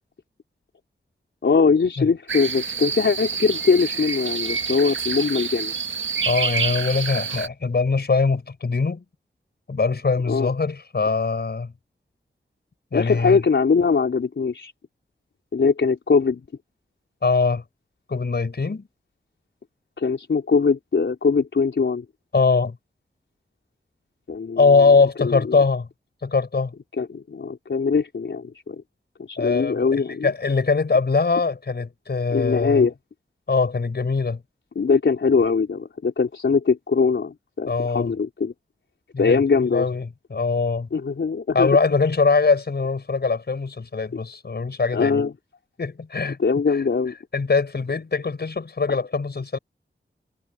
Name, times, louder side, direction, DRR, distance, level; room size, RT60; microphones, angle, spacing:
voice 1, 1.4-5.7 10.3-10.5 12.9-14.7 15.5-16.4 20.0-22.0 24.3-25.6 27.0-28.8 29.2-30.3 32.3-32.9 34.8-38.5 39.2-39.8 40.9-41.7 44.9-45.3 46.4-47.1 48.9-49.0, left 5 dB, 75° left, 4.0 m, -21 dB
sound 1, 2.3-7.5, right 5 dB, 85° right, 1.6 m, -27 dB
voice 2, 6.2-9.0 9.7-11.7 12.9-13.4 17.2-17.6 18.1-18.9 22.3-22.8 24.6-25.9 26.2-26.7 29.4-32.9 33.5-34.4 37.7-38.1 39.1-40.9 41.5-45.2 45.8-46.6 47.3-49.6, left 4 dB, 60° left, 5.1 m, -22 dB
wide cardioid pair, 65°, 19 cm